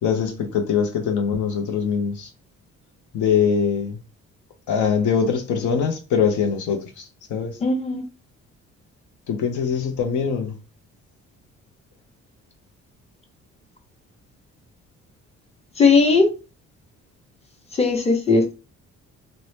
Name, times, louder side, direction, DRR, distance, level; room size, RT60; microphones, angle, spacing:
voice 1, 0.0-2.3 3.1-4.0 4.7-7.6 9.3-10.6, left 6 dB, 75° left, 0.6 m, -23 dB
voice 2, 7.6-8.0 15.8-16.3 17.8-18.5, left 4 dB, 20° left, 0.8 m, -17 dB
2.7 x 2.0 x 3.2 m
cardioid pair, 90°, 30 cm